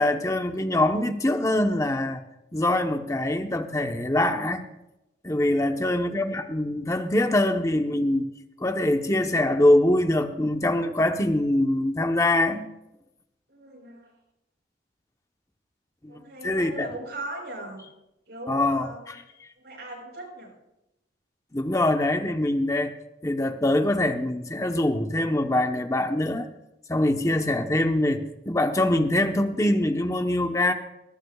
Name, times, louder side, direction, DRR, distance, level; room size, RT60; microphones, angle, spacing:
voice 1, 0.0-2.2 2.5-4.7 5.2-8.3 8.6-12.6 16.0-16.9 18.5-18.8 21.5-22.9 23.2-26.5 26.9-30.7, left 1 dB, 20° left, 5 dB, 0.9 m, -23 dB
voice 2, 5.5-6.3 13.5-14.1 16.1-17.8 18.3-19.2 19.6-20.5, right 1 dB, 65° right, -2 dB, 6.5 m, -39 dB
20.0 x 18.0 x 2.4 m, 0.90 s
head